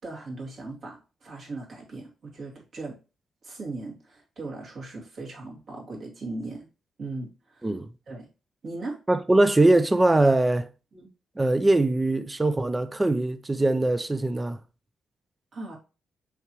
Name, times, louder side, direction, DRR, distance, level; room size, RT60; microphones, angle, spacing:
voice 1, 0.0-3.0 3.4-6.7 7.0-7.7 8.1-8.3 8.6-9.0 10.9-11.1 15.5-15.8, right 2 dB, 55° right, 2.9 m, -38 dB
voice 2, 9.1-10.7 11.4-14.6, right 2 dB, 15° right, 0.5 m, -22 dB
6.4 x 4.9 x 3.0 m
cardioid pair, 125°, 0 cm